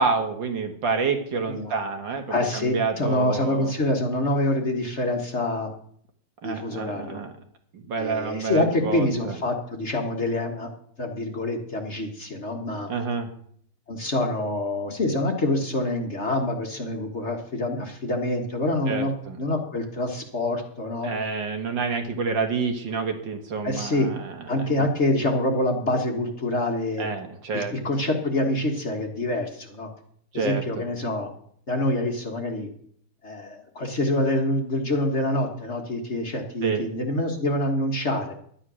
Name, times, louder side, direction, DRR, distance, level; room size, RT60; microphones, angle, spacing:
voice 1, 0.0-3.7 6.4-7.3 7.7-9.4 12.9-13.3 18.9-19.4 21.0-24.9 27.0-27.7 30.3-30.8 36.6-36.9, right 4 dB, 65° right, 6 dB, 2.2 m, -28 dB
voice 2, 2.3-5.7 6.4-7.2 8.0-10.7 11.0-12.9 13.9-19.1 19.4-21.1 23.6-24.1 24.5-27.1 27.5-29.9 30.3-31.3 31.7-32.7 33.2-38.3, left 1 dB, 35° left, 3 dB, 1.6 m, -26 dB
12.0 x 10.0 x 6.2 m, 0.63 s
omnidirectional pair, 2.2 m